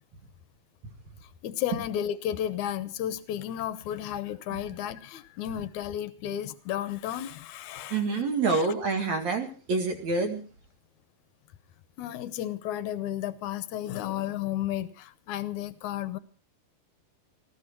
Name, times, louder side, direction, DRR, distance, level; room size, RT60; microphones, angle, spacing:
voice 1, 1.2-8.7 12.0-16.2, left 11 dB, 70° left, 2.0 m, -33 dB
voice 2, 7.9-10.4, right 4 dB, 50° right, 3.2 m, -27 dB
19.5 x 15.0 x 4.5 m
omnidirectional pair, 4.3 m